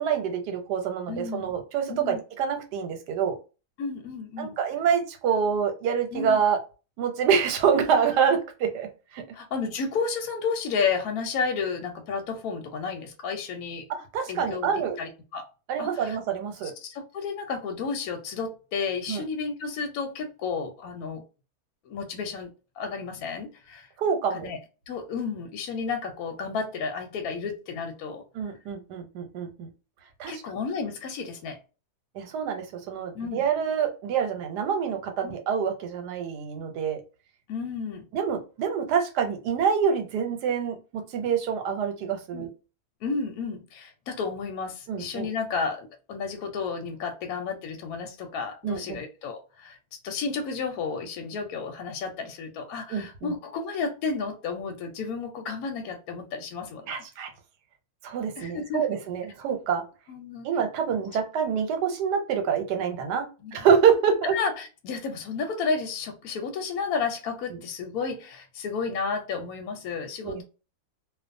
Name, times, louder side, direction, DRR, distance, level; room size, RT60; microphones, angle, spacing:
voice 1, 0.0-3.4 4.4-6.6 7.0-9.2 13.9-15.0 15.7-16.7 19.1-19.2 24.0-24.5 28.3-29.7 30.2-30.4 32.1-37.0 38.1-42.5 44.9-45.3 48.6-49.0 52.9-53.3 56.9-57.3 58.0-59.9 60.4-64.4 67.5-67.6 70.2-70.4, right 7 dB, 85° right, 1.3 m, -26 dB
voice 2, 1.1-1.6 1.9-2.2 3.8-4.5 6.1-6.4 9.3-13.9 14.3-14.7 15.0-15.5 15.8-16.2 16.6-21.2 21.8-22.5 22.8-23.9 24.3-24.6 24.9-28.2 30.3-31.6 33.1-33.4 35.2-35.3 37.5-38.0 42.3-42.5 43.0-49.8 50.0-57.0 58.4-58.9 60.1-60.5 63.4-63.6 64.3-70.4, left 5 dB, 70° left, 1.0 m, -32 dB
2.5 x 2.4 x 2.5 m
omnidirectional pair, 1.7 m